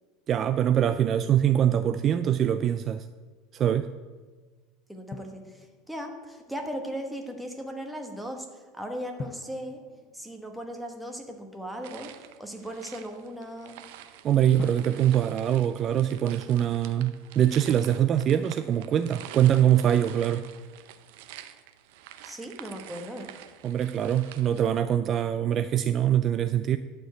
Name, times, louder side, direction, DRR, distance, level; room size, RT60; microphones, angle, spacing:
voice 1, 0.3-3.0 3.5-3.9 14.2-20.5 23.6-26.8, right 10 dB, 35° right, 11 dB, 0.3 m, -23 dB
voice 2, 4.9-9.8 10.1-12.1 12.4-13.8 22.2-23.3, equal, ahead, 3 dB, 1.2 m, -37 dB
Drum, 5.1-6.2 9.2-11.0 14.6-16.6, left 4 dB, 30° left, 0.5 m, -43 dB
sound 1, 11.8-24.8, right 11 dB, 75° right, 0.7 m, -47 dB
11.0 x 4.5 x 7.8 m, 1.4 s
supercardioid pair, 150°, 0 cm